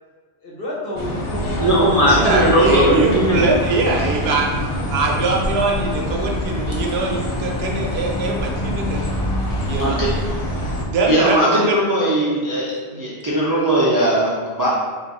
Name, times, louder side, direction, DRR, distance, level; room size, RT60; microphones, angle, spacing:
voice 1, 0.4-2.5, left 1 dB, 55° left, -6 dB, 1.0 m, -31 dB
sound 1, 1.0-10.8, left 1 dB, 40° left, 0.5 m, -24 dB
voice 2, 1.6-3.5 9.8-10.1 11.1-14.7, right 1 dB, 30° right, -7 dB, 0.4 m, -18 dB
voice 3, 2.1-4.5 4.9-9.0 9.7-10.0 10.8-11.8 12.9-13.0, right 3 dB, 65° right, 0 dB, 0.8 m, -22 dB
3.5 x 2.4 x 4.0 m, 1.4 s
omnidirectional pair, 1.2 m